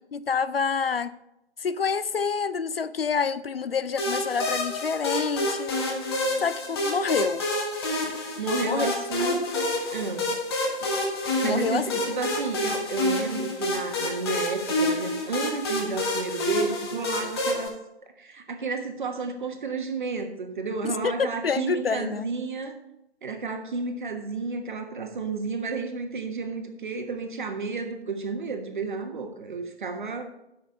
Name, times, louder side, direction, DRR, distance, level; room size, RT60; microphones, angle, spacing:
voice 1, 0.1-1.1 1.6-5.8 6.4-7.4 8.6-8.9 11.4-12.0 20.8-22.3, left 6 dB, 60° left, 0.5 m, -27 dB
sound 1, 4.0-17.7, left 1 dB, 20° left, 1.3 m, -28 dB
voice 2, 8.4-10.4 10.8-10.9 11.4-17.8 18.2-22.8 23.2-30.3, right 4 dB, 45° right, 1.3 m, -32 dB
8.4 x 6.4 x 5.4 m
figure-of-eight pair, 145°, 33 cm